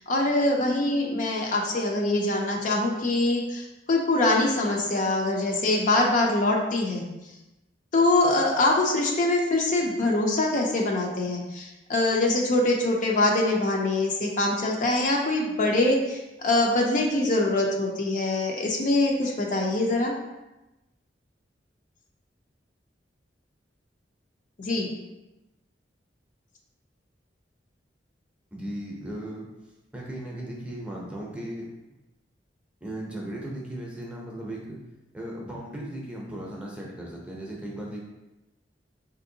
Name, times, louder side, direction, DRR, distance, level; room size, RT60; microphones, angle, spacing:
voice 1, 0.0-7.0 7.9-20.1 24.6-24.9, left 2 dB, 45° left, 0 dB, 0.5 m, -24 dB
voice 2, 28.5-29.5 29.9-31.7 32.8-34.8 35.1-38.0, right 1 dB, 5° right, -3 dB, 0.6 m, -36 dB
4.2 x 2.6 x 2.7 m, 1.0 s
head